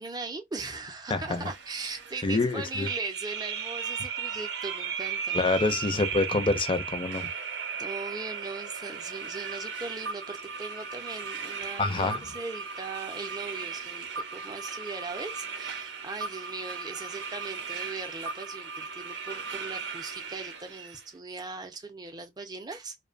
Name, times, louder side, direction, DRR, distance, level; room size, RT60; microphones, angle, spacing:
voice 1, 0.0-5.8 7.7-23.0, right 3 dB, 20° right, 0.5 m, -39 dB
voice 2, 1.1-1.5 2.2-2.9 5.3-7.3 11.8-12.2, left 3 dB, 25° left, 0.5 m, -26 dB
sound 1, 1.3-21.0, right 6 dB, 75° right, 0.6 m, -36 dB
2.7 x 2.1 x 2.4 m
head